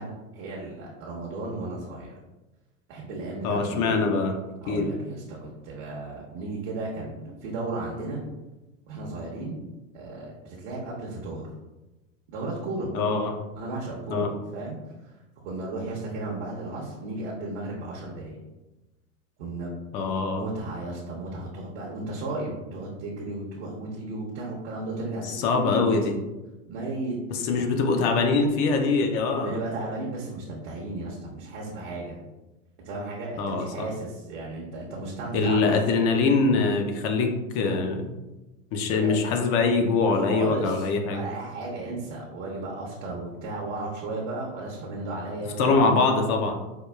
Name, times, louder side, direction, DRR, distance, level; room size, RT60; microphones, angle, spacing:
voice 1, 0.0-2.2 2.9-4.0 4.6-8.2 8.9-9.6 9.9-11.5 12.3-12.9 13.6-15.1 15.4-18.4 19.4-19.8 20.4-25.9 26.7-27.1 27.6-27.7 29.4-32.2 32.8-35.7 38.9-39.2 40.1-45.9, right 2 dB, 60° right, -4 dB, 0.9 m, -34 dB
voice 2, 3.4-4.4 4.7-4.9 12.9-13.3 14.1-14.3 19.9-20.5 25.3-26.1 27.3-29.5 33.4-33.9 35.3-38.1 38.7-41.3 45.6-46.6, left 4 dB, 40° left, 4 dB, 0.5 m, -23 dB
4.6 x 2.3 x 2.2 m, 1.1 s
hypercardioid pair, 115°, 38 cm